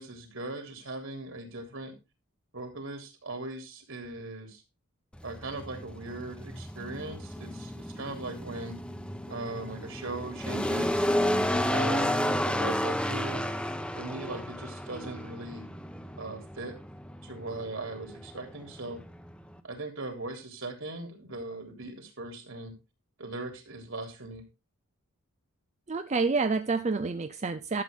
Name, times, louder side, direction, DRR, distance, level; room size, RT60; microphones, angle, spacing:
voice 1, 0.0-2.0 2.5-4.6 5.2-8.8 9.3-11.1 11.7-13.5 14.0-15.7 16.2-16.8 17.2-19.0 19.6-22.7 23.2-24.4, right 2 dB, 60° right, 3.5 m, -39 dB
sound 1, 5.1-19.6, equal, 5° left, 1.0 m, -32 dB
voice 2, 25.9-27.8, right 4 dB, 30° right, 0.5 m, -28 dB
12.5 x 8.0 x 3.7 m
head